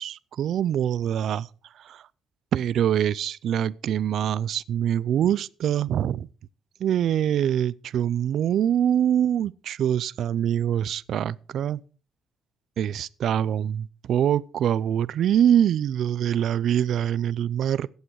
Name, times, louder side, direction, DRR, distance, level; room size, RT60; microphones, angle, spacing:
voice 1, 0.0-1.5 1.8-2.0 2.5-6.3 6.8-11.8 12.8-17.9, right 10 dB, 65° right, 0.5 m, -24 dB
15.0 x 8.7 x 4.7 m
cardioid pair, 110°, 0 cm